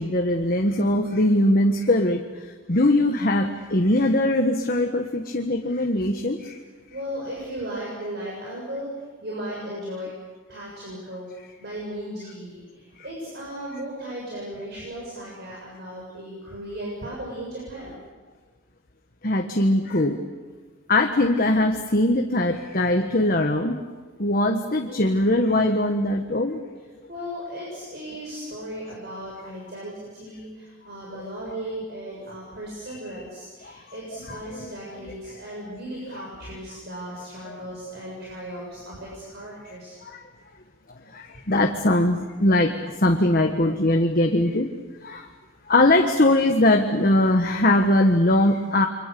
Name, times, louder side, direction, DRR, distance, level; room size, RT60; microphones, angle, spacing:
voice 1, 0.0-6.6 19.2-20.2 20.9-23.8 24.2-26.6 32.2-32.3 33.6-33.8 34.3-34.7 36.1-36.2 37.5-37.6 40.0-40.3 41.1-44.7 45.0-45.3 45.7-48.9, left 1 dB, 45° left, 4 dB, 1.5 m, -21 dB
voice 2, 6.9-10.1 10.5-18.0 27.1-39.9, right 1 dB, 55° right, -4 dB, 7.2 m, -36 dB
30.0 x 24.5 x 7.0 m, 1.3 s
head